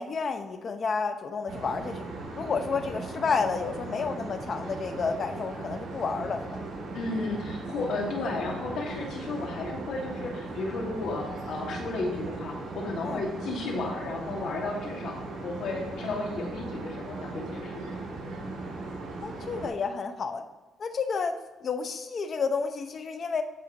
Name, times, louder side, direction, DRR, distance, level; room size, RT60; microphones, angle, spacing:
voice 1, 0.0-2.0 2.3-6.6 13.0-13.2 19.2-20.4 20.8-21.3 21.6-23.4, left 5 dB, 50° left, 8 dB, 0.8 m, -30 dB
sound 1, 1.5-19.7, right 3 dB, 70° right, 2.4 m, -38 dB
voice 2, 6.9-18.1, left 2 dB, 70° left, -1 dB, 2.0 m, -33 dB
14.5 x 4.8 x 3.0 m, 1.2 s
cardioid pair, 90°, 0 cm